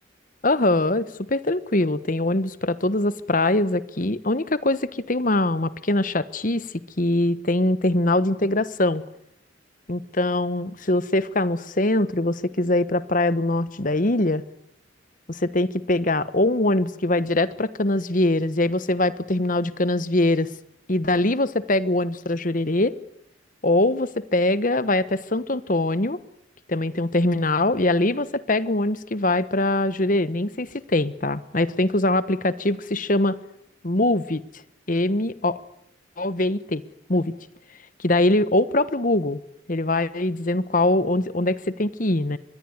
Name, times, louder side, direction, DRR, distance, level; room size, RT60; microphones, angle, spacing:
voice 1, 0.4-6.7 7.0-9.0 9.9-14.4 15.3-20.5 20.9-23.0 23.6-26.2 26.7-33.4 33.8-34.4 34.9-35.6 36.2-36.8 37.1-37.3 38.0-39.4 39.7-42.4, left 2 dB, 40° left, 15 dB, 1.2 m, -22 dB
24.0 x 21.5 x 9.6 m, 0.73 s
head